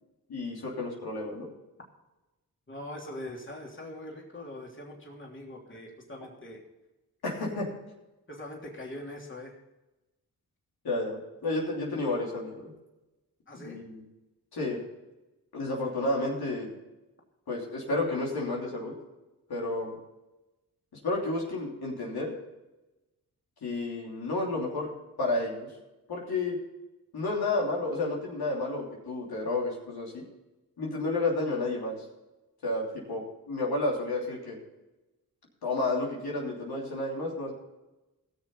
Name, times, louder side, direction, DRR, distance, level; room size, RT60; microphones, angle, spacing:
voice 1, 0.3-1.5 7.2-7.7 10.8-12.7 13.5-14.0 14.5-14.8 15.5-16.7 17.5-18.9 19.5-20.0 21.0-22.3 23.6-24.9 25.2-25.7 26.1-26.6 27.1-30.2 30.8-32.0 32.6-34.6 35.6-37.5, left 2 dB, 80° left, -3 dB, 3.2 m, -31 dB
voice 2, 2.7-6.6 8.3-9.5 13.5-13.8, left 1 dB, 30° left, -1 dB, 3.1 m, -42 dB
15.5 x 6.9 x 5.5 m, 1.0 s
cardioid pair, 50°, 37 cm